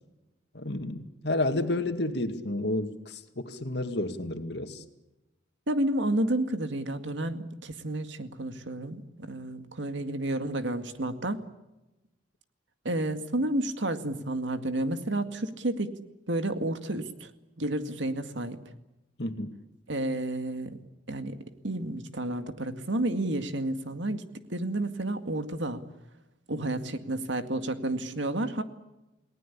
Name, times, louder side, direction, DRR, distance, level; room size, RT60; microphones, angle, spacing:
voice 1, 0.5-4.8 19.2-19.6, left 2 dB, 60° left, 7 dB, 2.2 m, -31 dB
voice 2, 5.7-11.4 12.8-15.9 16.3-17.3 17.6-18.6 19.9-20.8 21.1-21.4 21.6-24.2 24.5-25.8 26.5-28.6, right 1 dB, 75° right, 8 dB, 2.1 m, -31 dB
29.5 x 19.0 x 8.5 m, 1.0 s
head